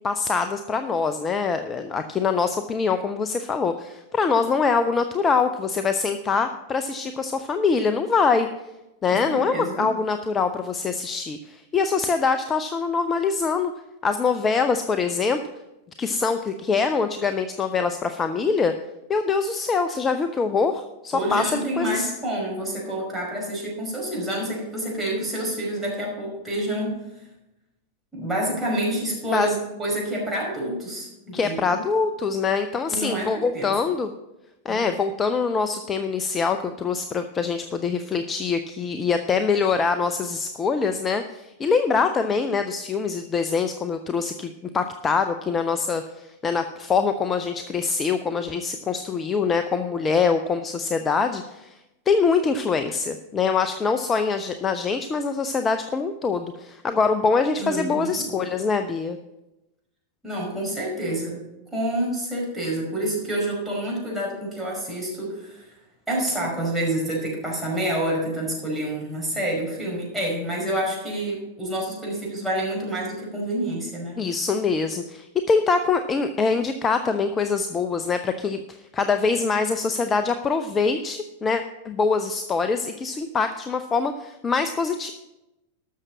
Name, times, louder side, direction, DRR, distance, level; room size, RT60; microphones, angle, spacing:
voice 1, 0.0-8.5 9.0-13.7 14.0-15.4 16.0-18.7 19.1-22.1 29.3-29.5 31.3-34.1 34.6-51.8 52.1-59.2 74.2-85.1, left 5 dB, 20° left, 9 dB, 0.6 m, -24 dB
voice 2, 9.1-9.9 21.1-26.9 28.1-31.8 32.9-33.7 34.7-34.8 57.6-58.3 60.2-61.4 61.7-65.6 66.1-74.2, right 1 dB, 5° right, -4 dB, 5.3 m, -28 dB
13.0 x 6.6 x 6.1 m, 0.95 s
figure-of-eight pair, 90°, 0 cm